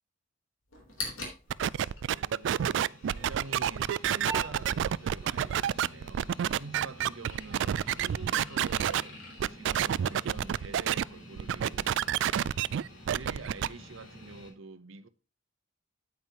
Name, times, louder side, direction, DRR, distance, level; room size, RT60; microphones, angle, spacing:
sound 1, 0.7-14.5, left 1 dB, 90° left, 3.5 m, -45 dB
sound 2, 1.5-9.0 9.4-11.0 11.4-13.7, right 9 dB, 65° right, 0.3 m, -28 dB
voice 1, 2.1-9.2 9.5-12.1 13.1-15.1, right 3 dB, 85° right, 0.8 m, -46 dB
9.1 x 8.8 x 2.9 m
head